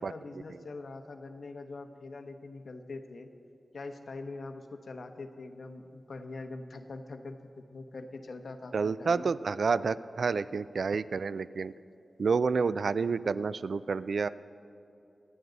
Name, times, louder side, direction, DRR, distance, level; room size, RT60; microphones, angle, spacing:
voice 1, 0.0-3.3 3.7-9.3, left 3 dB, 65° left, 6 dB, 1.0 m, -43 dB
voice 2, 8.7-11.7 12.2-14.3, right 5 dB, 70° right, 16 dB, 0.3 m, -29 dB
26.0 x 9.4 x 4.0 m, 2.7 s
wide cardioid pair, 120°, 0 cm